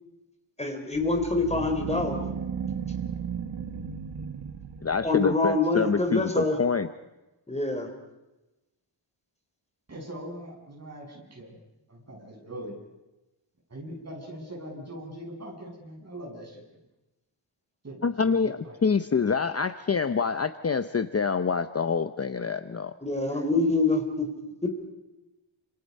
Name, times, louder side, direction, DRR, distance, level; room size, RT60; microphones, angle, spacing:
voice 1, 0.6-2.2 5.0-6.6 7.5-7.9 23.0-24.3 24.6-24.7, left 3 dB, 15° left, 4 dB, 3.7 m, -25 dB
sound 1, 0.9-5.3, right 7 dB, 65° right, 1.8 m, -35 dB
voice 2, 4.8-6.9 18.0-22.9, left 5 dB, 30° left, 10 dB, 0.8 m, -26 dB
voice 3, 9.9-11.6 11.9-12.8 13.7-16.6 17.8-18.4 18.6-18.8, right 1 dB, 35° right, -1 dB, 7.8 m, -41 dB
30.0 x 27.0 x 5.5 m, 1.0 s
wide cardioid pair, 135°, 47 cm